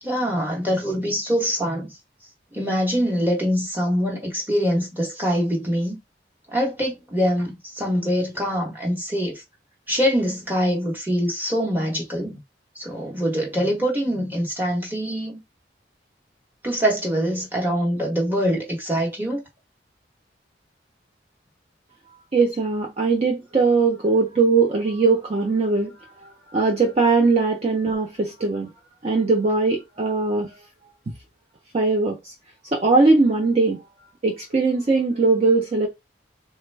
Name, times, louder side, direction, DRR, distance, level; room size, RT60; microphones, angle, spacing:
voice 1, 0.0-2.0 2.5-6.0 6.5-9.4 9.9-12.4 12.7-15.4 16.6-19.4, equal, 10° right, 0.9 m, -24 dB
voice 2, 22.3-25.9 26.2-28.7 29.0-30.5 31.7-32.2 32.7-33.8 34.2-35.9, right 3 dB, 35° right, 0.5 m, -20 dB
3.3 x 2.1 x 3.2 m
head